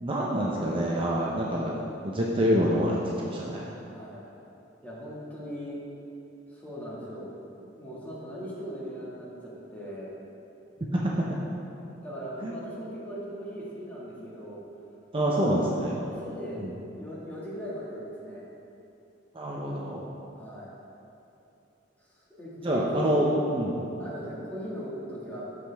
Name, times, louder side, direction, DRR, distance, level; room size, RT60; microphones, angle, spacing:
voice 1, 0.0-1.8 2.0-3.8 10.9-11.3 12.4-12.5 15.1-16.0 16.6-16.7 19.3-20.0 22.6-23.8, equal, 30° right, -4 dB, 0.7 m, -26 dB
voice 2, 3.9-4.3 4.8-5.8 6.5-7.3 7.6-10.1 12.0-14.6 15.3-15.7 16.0-18.5 20.4-20.7 22.1-23.3 24.0-25.4, equal, 10° left, -8 dB, 1.9 m, -39 dB
13.0 x 5.1 x 3.5 m, 2.9 s
head